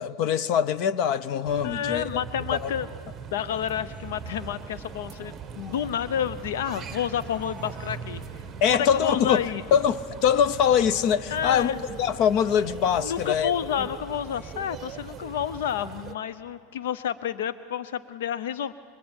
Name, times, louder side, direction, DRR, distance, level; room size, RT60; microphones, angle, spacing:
voice 1, 0.0-2.2 2.5-2.7 8.6-9.4 9.7-13.5, left 8 dB, 50° left, 0.7 m, -23 dB
sound 1, 1.4-16.1, right 7 dB, 20° right, 1.1 m, -41 dB
voice 2, 1.6-2.9 3.3-8.2 8.7-9.6 11.3-11.8 13.0-18.7, left 9 dB, 85° left, 0.6 m, -30 dB
sound 2, 3.5-15.6, right 1 dB, 20° left, 2.5 m, -49 dB
25.0 x 23.5 x 8.9 m
supercardioid pair, 145°, 0 cm